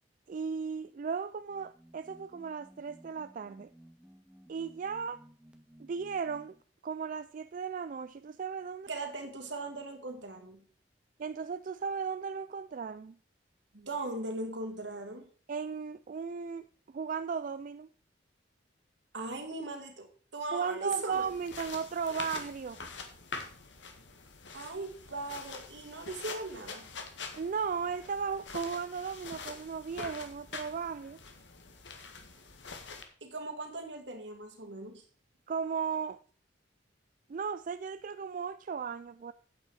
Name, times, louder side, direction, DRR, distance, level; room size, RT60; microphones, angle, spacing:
voice 1, 0.3-3.7 4.5-5.2 5.8-6.6 6.8-8.9 11.2-13.2 15.5-16.7 16.9-17.9 20.5-22.8 27.4-31.2 35.5-36.2 37.3-39.3, right 6 dB, 45° right, 0.3 m, -36 dB
sound 1, 1.3-6.6, equal, 5° right, 1.3 m, -58 dB
voice 2, 8.9-10.6 13.7-15.3 19.1-21.3 24.5-26.9 33.2-35.0, right 2 dB, 70° right, 2.2 m, -39 dB
sound 2, 21.1-33.0, left 4 dB, 75° left, 1.8 m, -45 dB
9.0 x 8.5 x 4.7 m
head